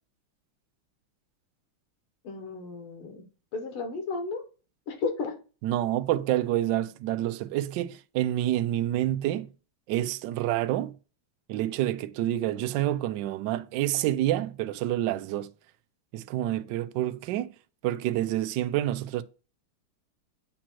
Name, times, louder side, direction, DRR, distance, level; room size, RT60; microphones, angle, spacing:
voice 1, 2.2-3.2 3.5-4.4 4.9-5.4, left 4 dB, 75° left, 2.2 m, -33 dB
voice 2, 5.6-9.5 9.9-11.0 11.5-15.5 16.1-17.5 17.8-19.2, right 13 dB, 75° right, 1.0 m, -28 dB
8.6 x 3.0 x 4.4 m
omnidirectional pair, 2.4 m